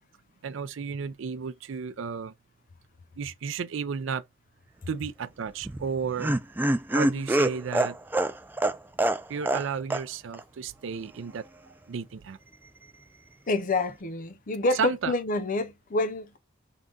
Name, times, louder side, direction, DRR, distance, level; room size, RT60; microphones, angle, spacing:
voice 1, 0.4-2.3 3.2-4.2 4.9-6.4 6.9-8.0 9.3-11.4 11.9-12.4 14.7-15.1, right 6 dB, 75° right, 0.4 m, -33 dB
Laughter, 5.6-9.7 9.9-10.0 10.3-10.4, right 1 dB, 10° right, 0.3 m, -25 dB
voice 2, 13.5-16.4, left 2 dB, 45° left, 0.6 m, -27 dB
3.7 x 2.3 x 3.7 m
head